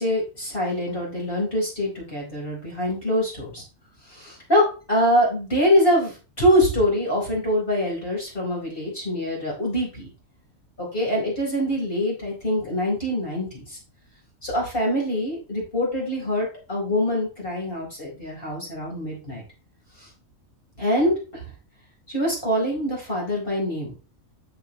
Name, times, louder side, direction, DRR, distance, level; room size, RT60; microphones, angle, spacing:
voice 1, 0.0-3.6 4.1-10.1 10.8-13.8 14.4-19.4 20.0-20.1 20.8-21.5 22.1-23.9, equal, 40° left, -4 dB, 4.9 m, -24 dB
7.5 x 6.7 x 4.3 m, 0.33 s
omnidirectional pair, 1.5 m